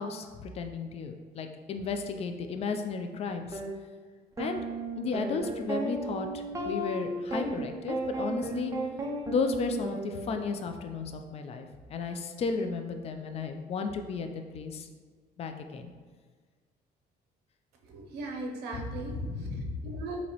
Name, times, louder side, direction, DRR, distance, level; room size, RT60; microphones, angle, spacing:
voice 1, 0.0-3.6 4.4-4.7 5.0-8.7 9.3-14.9 15.4-15.9 18.7-18.9 19.1-19.9, left 4 dB, 35° left, 6 dB, 0.4 m, -34 dB
sound 1, 3.5-3.7 4.4-10.7, right 2 dB, 20° right, 0.5 m, -35 dB
voice 2, 17.9-20.2, right 2 dB, 80° right, 2 dB, 0.7 m, -39 dB
4.0 x 2.8 x 3.0 m, 1.5 s
cardioid pair, 110°, 17 cm